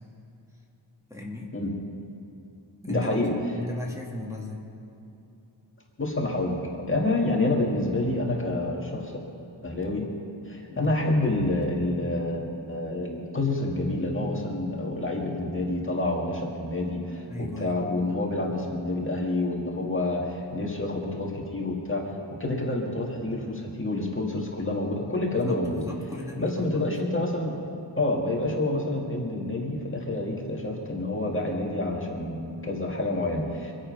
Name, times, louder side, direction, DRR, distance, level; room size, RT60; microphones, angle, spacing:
voice 1, 1.1-1.5 2.8-3.2 3.6-4.6 10.7-11.0 17.3-17.8 25.3-26.9, left 1 dB, 5° right, -2 dB, 1.9 m, -36 dB
voice 2, 2.9-3.3 6.0-9.1 9.6-10.0 10.5-12.4 12.7-22.0 22.4-25.8 26.4-27.5 28.0-33.7, left 2 dB, 25° left, -1 dB, 1.9 m, -28 dB
25.0 x 8.7 x 5.4 m, 2.7 s
wide cardioid pair, 125°, 49 cm